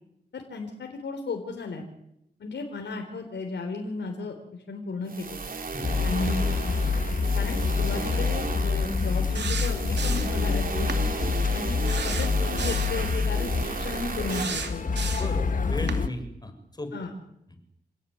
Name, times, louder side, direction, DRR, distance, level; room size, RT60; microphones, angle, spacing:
voice 1, 0.3-1.8 2.4-5.4 6.0-6.9 7.3-10.9 11.5-11.8 12.0-14.8 15.8-16.0 16.9-17.1, left 3 dB, 90° left, 4 dB, 3.9 m, -34 dB
sound 1, 5.1-14.4, right 4 dB, 55° right, 2.9 m, -34 dB
sound 2, 5.8-16.1, left 5 dB, 50° left, 1.6 m, -27 dB
sound 3, 9.3-10.4 10.9-11.0 11.9-13.0 14.3-15.4 15.9-16.0, right 6 dB, 80° right, 2.8 m, -34 dB
voice 2, 15.1-16.9 17.5-17.6, left 1 dB, 25° left, 8 dB, 5.9 m, -36 dB
29.0 x 17.0 x 9.7 m, 0.79 s
wide cardioid pair, 90°, 18 cm